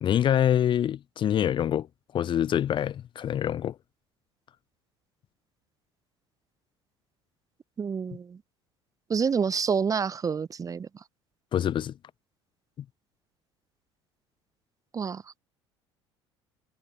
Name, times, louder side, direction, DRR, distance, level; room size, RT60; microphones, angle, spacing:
voice 1, 0.0-1.9 2.1-3.8 11.5-11.9, left 10 dB, 35° left, 0.6 m, -25 dB
voice 2, 7.8-8.4 9.1-10.9 14.9-15.2, right 6 dB, 25° right, 0.7 m, -28 dB
figure-of-eight pair, 60°, 14 cm